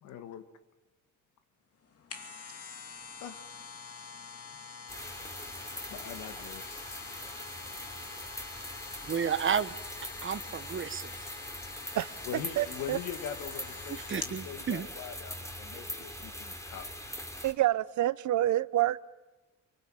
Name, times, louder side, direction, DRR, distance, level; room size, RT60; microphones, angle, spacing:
voice 1, 0.0-0.4 3.2-3.4 5.9-7.0 12.3-16.9, left 9 dB, 90° left, 2.0 m, -42 dB
sound 1, 1.8-14.4 14.9-15.0, left 5 dB, 50° left, 2.6 m, -46 dB
sound 2, 4.9-17.5, left 1 dB, 10° left, 3.3 m, -42 dB
voice 2, 9.0-9.7 10.2-11.1 14.1-14.9, right 7 dB, 40° right, 1.2 m, -31 dB
voice 3, 11.9-13.0 17.4-19.0, right 14 dB, 70° right, 0.8 m, -28 dB
24.5 x 24.0 x 8.9 m
cardioid pair, 90°, 30 cm